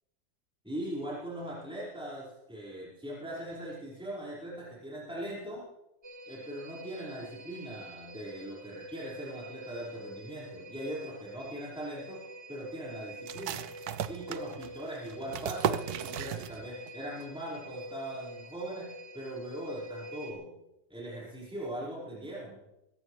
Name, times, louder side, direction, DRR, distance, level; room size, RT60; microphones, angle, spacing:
voice 1, 0.6-5.6 6.3-12.2 12.5-13.7 14.1-20.5 20.9-22.6, right 1 dB, 5° right, -7 dB, 5.0 m, -40 dB
sound 1, 6.0-20.3, right 1 dB, 30° right, 2.2 m, -47 dB
sound 2, 13.3-16.9 17.2-17.3 17.7-18.2, right 9 dB, 65° right, 1.1 m, -35 dB
23.5 x 14.5 x 3.3 m, 0.93 s
omnidirectional pair, 2.0 m